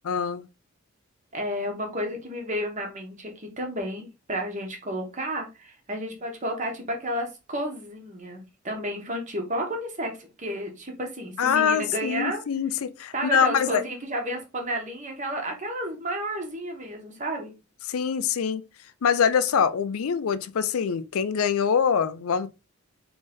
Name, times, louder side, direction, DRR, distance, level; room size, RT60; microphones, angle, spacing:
voice 1, 0.0-0.5 11.4-13.8 17.9-18.6 19.0-22.5, left 7 dB, 80° left, 0.4 m, -24 dB
voice 2, 1.3-12.4 13.1-17.5, equal, 35° right, 1.2 m, -32 dB
3.9 x 3.5 x 3.5 m
head